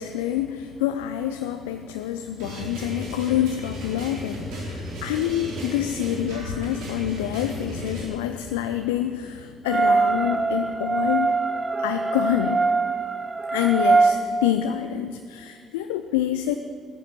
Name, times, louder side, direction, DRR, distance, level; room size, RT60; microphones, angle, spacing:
voice 1, 0.0-11.4 11.8-12.6 13.5-16.6, left 11 dB, 75° left, 8 dB, 0.5 m, -27 dB
sound 1, 2.4-8.0, equal, 70° right, 4.1 m, -35 dB
sound 2, 9.7-14.1, right 3 dB, 30° right, 0.9 m, -22 dB
15.0 x 14.0 x 6.0 m, 2.2 s
figure-of-eight pair, 45°, 0 cm